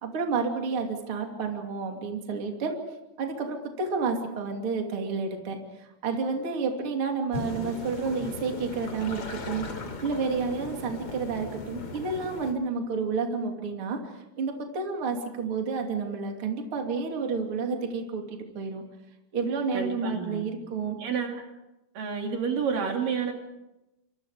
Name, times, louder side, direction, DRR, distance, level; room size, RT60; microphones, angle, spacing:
voice 1, 0.0-2.8 3.2-5.6 6.0-9.7 10.0-14.0 14.4-18.8 19.3-21.0, right 4 dB, 35° right, 2 dB, 3.3 m, -30 dB
sound 1, 7.3-12.5, left 3 dB, 40° left, 3.6 m, -38 dB
voice 2, 19.7-20.4 21.0-21.4 22.0-23.3, right 6 dB, 60° right, 2 dB, 4.0 m, -30 dB
27.5 x 26.5 x 5.1 m, 0.96 s
omnidirectional pair, 4.4 m